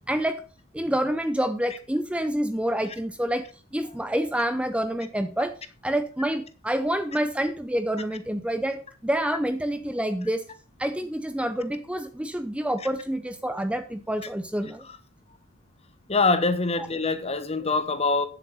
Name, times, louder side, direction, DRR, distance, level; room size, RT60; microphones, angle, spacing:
voice 1, 0.1-0.4 0.7-3.5 3.7-5.5 5.8-10.5 10.8-14.8, right 1 dB, 5° right, 0.6 m, -27 dB
voice 2, 16.1-18.3, left 3 dB, 30° left, 1.1 m, -24 dB
9.6 x 7.4 x 5.6 m
head